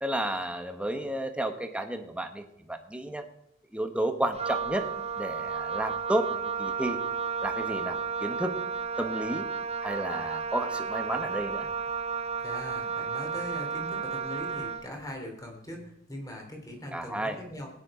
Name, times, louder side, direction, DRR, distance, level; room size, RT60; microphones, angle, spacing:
voice 1, 0.0-3.2 3.7-4.9 5.2-7.0 7.4-8.6 9.0-9.5 9.8-11.7 16.9-17.4, right 1 dB, 5° right, 6 dB, 1.1 m, -32 dB
Wind instrument woodwind instrument, 4.3-14.9, right 6 dB, 30° right, 0.6 m, -33 dB
voice 2, 12.4-17.7, equal, 20° left, 2 dB, 3.1 m, -41 dB
17.0 x 9.9 x 4.9 m, 0.75 s
head